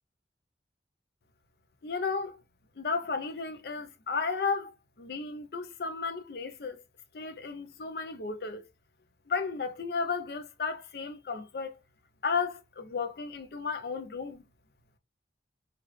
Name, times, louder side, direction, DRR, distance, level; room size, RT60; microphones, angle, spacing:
voice 1, 1.8-2.4 2.8-6.8 7.1-8.6 9.3-11.7 12.2-14.4, left 5 dB, 60° left, 0.5 m, -34 dB
3.2 x 2.4 x 3.1 m
head